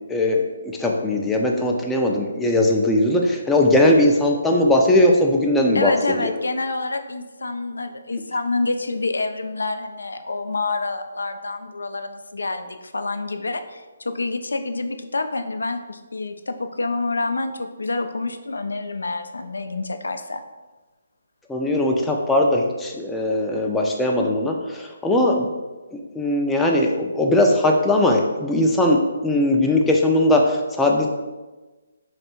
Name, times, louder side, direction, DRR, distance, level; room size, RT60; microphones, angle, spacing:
voice 1, 0.1-6.3 21.5-25.5 25.9-31.1, left 1 dB, 5° left, -1 dB, 0.4 m, -19 dB
voice 2, 5.7-20.4, left 3 dB, 90° left, 8 dB, 0.3 m, -27 dB
3.2 x 2.5 x 4.4 m, 1.2 s
hypercardioid pair, 155°, 0 cm